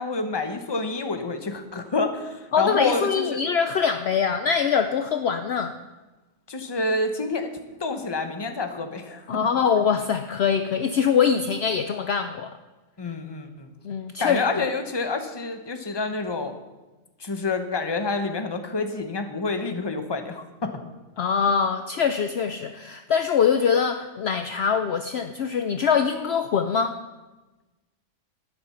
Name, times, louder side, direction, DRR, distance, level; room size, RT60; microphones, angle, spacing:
voice 1, 0.0-3.4 6.5-7.5 7.8-9.3 13.0-13.7 14.2-16.5 17.2-20.7, left 3 dB, 20° left, 7 dB, 1.0 m, -28 dB
voice 2, 2.5-5.8 9.3-12.5 13.8-14.4 21.2-27.0, left 6 dB, 60° left, 8 dB, 0.8 m, -23 dB
12.0 x 10.5 x 5.7 m, 1.1 s
omnidirectional pair, 1.4 m